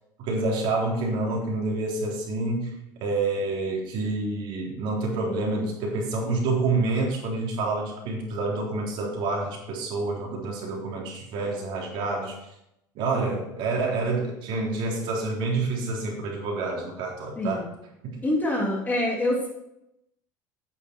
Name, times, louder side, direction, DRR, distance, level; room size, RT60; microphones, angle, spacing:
voice 1, 0.2-2.7 3.0-12.4 13.0-17.6 18.0-18.2, right 3 dB, 60° right, -2 dB, 3.7 m, -28 dB
voice 2, 17.4-17.7 18.2-19.5, left 1 dB, 20° left, -2 dB, 3.2 m, -25 dB
9.3 x 8.4 x 4.6 m, 0.82 s
supercardioid pair, 125°, 10 cm